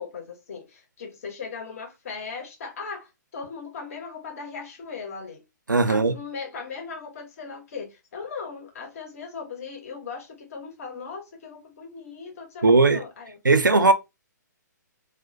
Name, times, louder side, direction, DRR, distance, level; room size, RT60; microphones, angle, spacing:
voice 1, 0.0-5.4 5.9-13.4, left 5 dB, 50° left, 1.0 m, -38 dB
voice 2, 5.7-6.1 12.6-13.0 13.4-13.9, right 3 dB, 85° right, 0.4 m, -18 dB
2.4 x 2.1 x 2.5 m
figure-of-eight pair, 125°, 10 cm